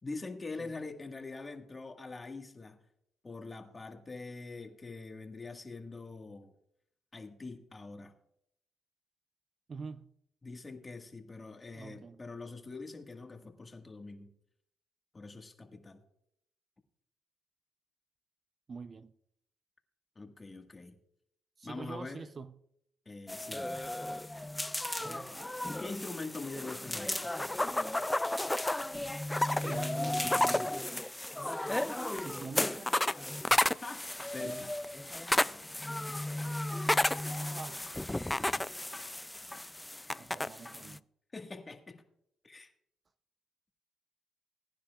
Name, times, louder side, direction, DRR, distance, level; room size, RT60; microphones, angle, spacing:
voice 1, 0.0-2.8 3.2-6.5 7.1-8.1 10.4-14.3 15.1-16.0 20.1-21.0 21.6-22.3 23.0-23.8 25.8-27.4 33.5-34.7 41.3-42.0 42.4-42.7, left 3 dB, 25° left, 1.7 m, -44 dB
voice 2, 9.7-10.1 11.7-12.2 18.7-19.1 21.6-22.5 25.0-25.3 29.6-30.8 32.2-33.0 34.4-34.7 36.7-37.9 40.2-41.0, right 4 dB, 40° right, 0.6 m, -46 dB
sound 1, 23.3-41.0, left 1 dB, 10° left, 0.3 m, -33 dB
20.5 x 10.0 x 2.4 m
cardioid pair, 90°, 0 cm